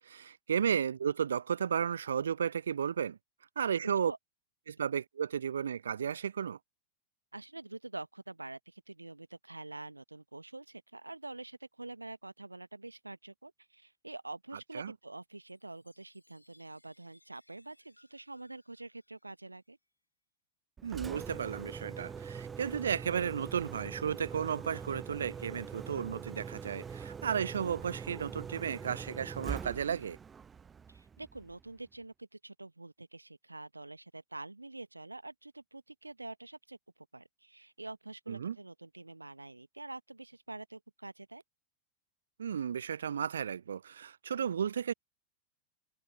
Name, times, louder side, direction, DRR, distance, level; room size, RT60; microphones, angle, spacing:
voice 1, 0.1-3.2 3.6-4.1 4.7-6.6 14.7-14.9 20.8-30.2 38.3-38.6 42.4-44.9, right 7 dB, 70° right, 0.4 m, -33 dB
voice 2, 3.8-4.2 7.3-19.8 30.9-36.8 37.1-41.4, right 2 dB, 85° right, 1.3 m, -46 dB
Chime, 15.3-19.9, left 1 dB, 85° left, 4.0 m, -69 dB
Engine, 20.8-31.7, right 6 dB, 20° right, 0.5 m, -43 dB
figure-of-eight pair, 90°, 0 cm